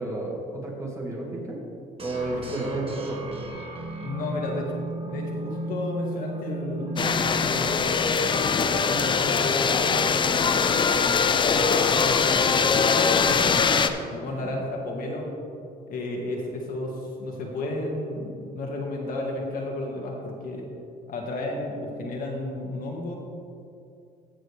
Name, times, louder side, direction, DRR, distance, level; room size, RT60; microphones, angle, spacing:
voice 1, 0.0-1.6 2.0-3.2 10.5-10.8 14.3-14.5, right 2 dB, 20° right, -2 dB, 2.1 m, -32 dB
sound 1, 2.0-8.9, right 2 dB, 35° right, 1.4 m, -35 dB
voice 2, 2.3-2.6 4.0-4.8 5.0-10.2 10.6-15.3 15.9-20.7 21.1-23.2, left 2 dB, 55° left, -1 dB, 1.7 m, -33 dB
sound 2, 7.0-13.9, left 5 dB, 30° left, 0.5 m, -22 dB
15.0 x 6.5 x 3.3 m, 2.5 s
cardioid pair, 110°, 17 cm